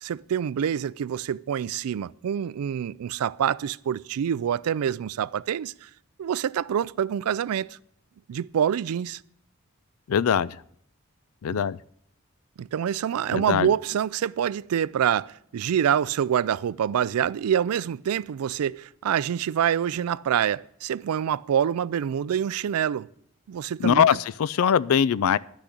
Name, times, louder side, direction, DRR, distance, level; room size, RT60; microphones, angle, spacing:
voice 1, 0.0-5.9 6.2-7.8 8.3-9.2 11.5-11.6 12.6-23.1 23.5-24.1, right 9 dB, 85° right, 0.3 m, -26 dB
voice 2, 10.1-10.6 11.4-11.8 13.3-13.7 23.8-25.4, left 8 dB, 75° left, 0.4 m, -22 dB
11.5 x 6.2 x 8.3 m
head